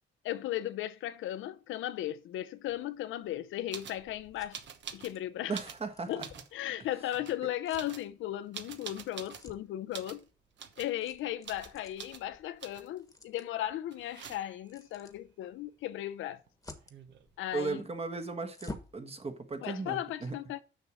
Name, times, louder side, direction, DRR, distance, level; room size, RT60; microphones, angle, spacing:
voice 1, 0.2-4.6 4.9-5.6 6.1-6.2 6.5-10.3 10.8-16.4 17.4-17.8 19.6-20.6, left 13 dB, 85° left, 0.6 m, -36 dB
sound 1, 2.7-19.0, left 2 dB, 15° left, 1.3 m, -54 dB
sound 2, 3.7-4.0 4.5-5.2 5.5-6.5 7.1-7.4 7.7-9.5 9.9-10.2 10.6-11.0 11.4-11.7 12.0-12.2 12.6-13.0 13.9-14.7 16.5-16.6 16.7-17.3, right 8 dB, 65° right, 1.1 m, -46 dB
voice 2, 5.5-6.3 17.5-20.3, right 4 dB, 30° right, 1.5 m, -36 dB
6.5 x 6.1 x 6.4 m
cardioid pair, 90°, 20 cm